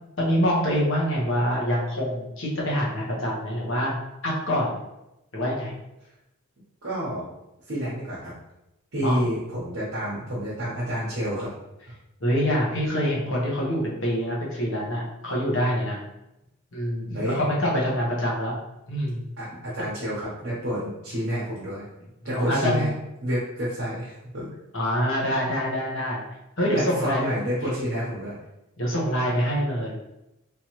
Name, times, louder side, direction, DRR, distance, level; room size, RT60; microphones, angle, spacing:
voice 1, 0.2-3.9 4.2-4.8 5.3-5.7 9.0-9.2 12.2-16.0 16.7-18.6 18.9-19.2 22.3-22.9 24.7-26.2 26.6-27.3 28.8-29.9, equal, 60° left, -4 dB, 1.1 m, -25 dB
voice 2, 6.8-7.3 7.7-8.3 8.9-11.5 17.1-17.4 19.4-21.8 22.2-22.9 23.2-24.5 26.7-28.4, equal, 55° right, -9 dB, 0.9 m, -29 dB
3.4 x 3.0 x 3.0 m, 0.91 s
head